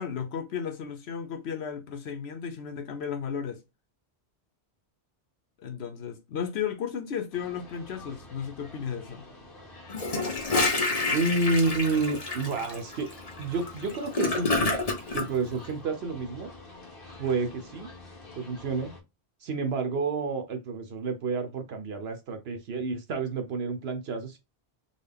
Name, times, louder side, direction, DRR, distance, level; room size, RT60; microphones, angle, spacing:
voice 1, 0.0-3.6 5.6-9.2, left 7 dB, 75° left, 1.0 m, -34 dB
sound 1, 7.3-19.0, left 2 dB, 55° left, 1.2 m, -48 dB
Gurgling / Toilet flush, 9.9-15.3, left 3 dB, 35° left, 1.0 m, -28 dB
voice 2, 11.1-13.1 13.4-14.8 15.1-16.5 17.2-17.9 18.4-18.9 19.4-24.4, right 3 dB, 70° right, 0.9 m, -29 dB
3.9 x 2.2 x 3.4 m
omnidirectional pair, 1.1 m